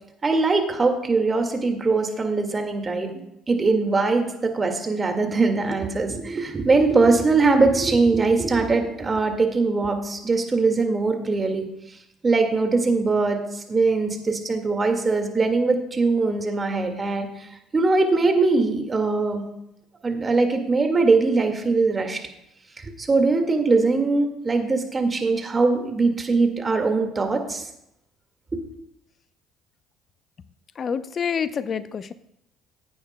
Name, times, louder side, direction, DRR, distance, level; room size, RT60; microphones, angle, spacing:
voice 1, 0.2-3.1 3.5-11.7 12.2-17.5 17.7-19.4 20.0-22.2 22.8-27.7 28.5-28.6, right 3 dB, 30° right, 4 dB, 2.0 m, -21 dB
voice 2, 30.8-32.1, left 7 dB, 45° left, 14 dB, 0.6 m, -27 dB
14.5 x 9.4 x 2.3 m, 0.81 s
hypercardioid pair, 60°, 0 cm